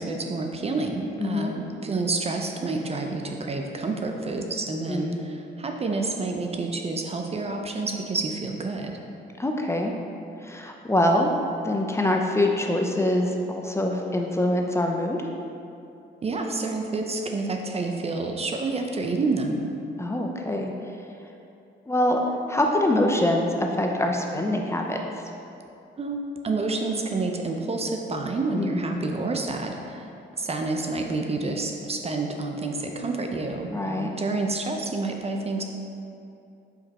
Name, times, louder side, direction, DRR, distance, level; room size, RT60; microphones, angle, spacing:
voice 1, 0.0-8.9 16.2-19.6 26.0-30.1 30.4-35.6, right 3 dB, 30° right, 3 dB, 0.6 m, -29 dB
voice 2, 1.2-1.5 4.9-5.2 9.4-9.9 10.4-11.3 11.6-15.2 20.0-20.7 21.9-22.2 22.5-25.0 28.5-28.9 33.7-34.1, left 1 dB, 15° left, 1 dB, 0.6 m, -24 dB
5.2 x 5.1 x 4.1 m, 2.7 s
cardioid pair, 90°, 20 cm